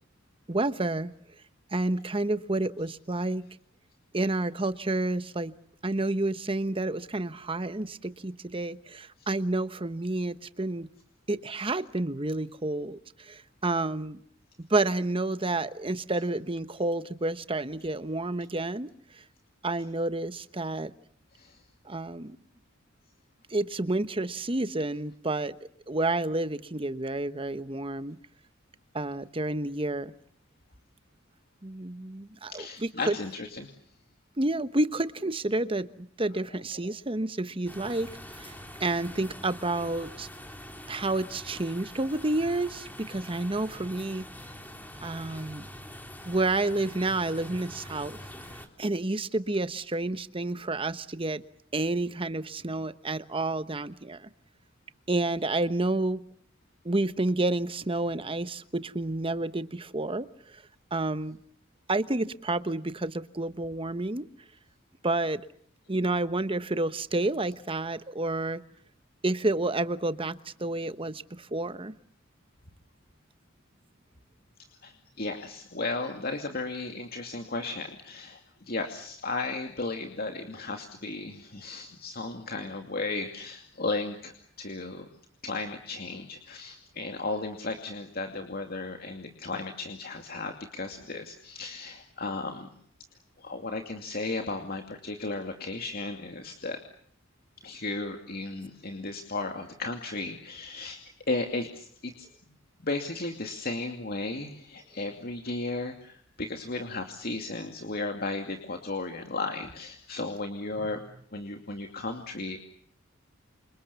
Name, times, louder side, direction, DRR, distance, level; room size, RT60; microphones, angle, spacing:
voice 1, 0.5-1.1 1.7-3.4 4.1-5.5 5.8-10.9 11.3-14.2 14.7-18.9 19.6-20.9 21.8-22.4 23.5-25.5 25.9-28.2 28.9-30.1 31.6-33.1 34.4-38.5 38.8-40.3 40.9-44.3 45.0-45.7 46.2-48.2 48.8-51.4 51.7-54.3 55.1-56.2 56.8-60.6 60.9-61.4 61.9-64.3 65.0-65.4 65.9-68.6 69.2-71.9, right 2 dB, 25° right, 13 dB, 1.1 m, -30 dB
voice 2, 32.5-33.7 36.8-36.9 74.8-78.4 78.7-85.0 85.4-92.7 93.4-96.8 97.6-101.0 101.3-102.3 102.8-111.0 111.3-112.6, left 3 dB, 50° left, 4 dB, 2.5 m, -35 dB
sound 1, 37.7-48.7, left 1 dB, 10° left, 3.3 m, -45 dB
28.5 x 27.0 x 7.0 m, 0.64 s
head